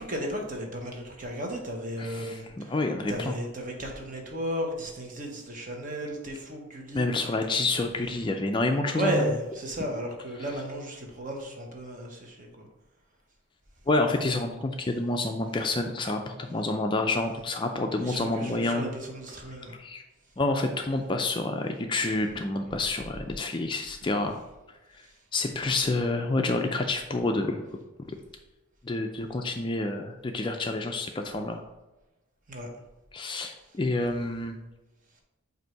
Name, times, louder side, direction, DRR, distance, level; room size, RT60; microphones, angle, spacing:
voice 1, 0.0-2.4 3.1-7.1 8.9-12.7 18.0-19.8 32.5-32.7, right 1 dB, 40° right, 1 dB, 1.0 m, -34 dB
voice 2, 2.0-3.4 6.9-9.4 10.4-10.5 13.9-18.9 19.5-20.0 20.4-24.4 24.9-25.1 25.3-27.7 28.0-28.2 28.8-31.6 33.1-34.6, left 2 dB, 25° left, 4 dB, 0.3 m, -28 dB
7.8 x 2.6 x 4.5 m, 1.0 s
head